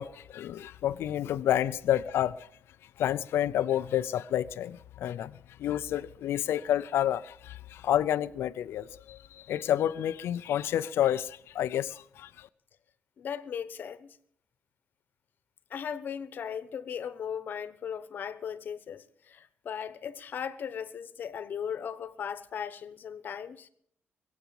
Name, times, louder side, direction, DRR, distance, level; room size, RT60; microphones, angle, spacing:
voice 1, 0.0-2.5 3.0-5.3 5.6-12.5, left 11 dB, 70° left, 0.5 m, -29 dB
voice 2, 13.2-14.2 15.7-23.7, left 8 dB, 50° left, 1.1 m, -37 dB
22.5 x 8.2 x 7.1 m
cardioid pair, 150°, 4 cm